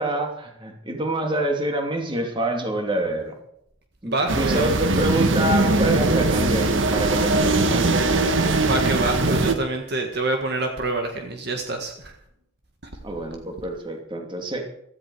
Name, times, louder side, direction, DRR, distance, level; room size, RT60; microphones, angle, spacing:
voice 1, 0.0-3.4 4.0-8.4 13.0-14.6, right 1 dB, 25° right, 3 dB, 2.6 m, -26 dB
voice 2, 4.0-4.6 8.6-12.2 12.9-13.0, right 2 dB, 55° right, 4 dB, 1.7 m, -26 dB
sound 1, 4.3-9.5, right 2 dB, 75° right, 1.5 m, -20 dB
16.0 x 14.0 x 4.8 m, 0.72 s
head